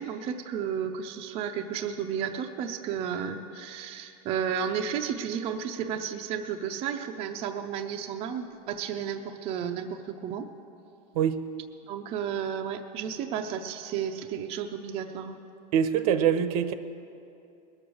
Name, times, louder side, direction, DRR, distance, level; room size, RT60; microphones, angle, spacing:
voice 1, 0.0-10.5 11.9-15.4, right 8 dB, 30° right, 4 dB, 0.5 m, -33 dB
voice 2, 15.7-16.7, right 8 dB, 80° right, 11 dB, 0.8 m, -24 dB
20.5 x 6.9 x 6.3 m, 2.7 s
supercardioid pair, 175°, 19 cm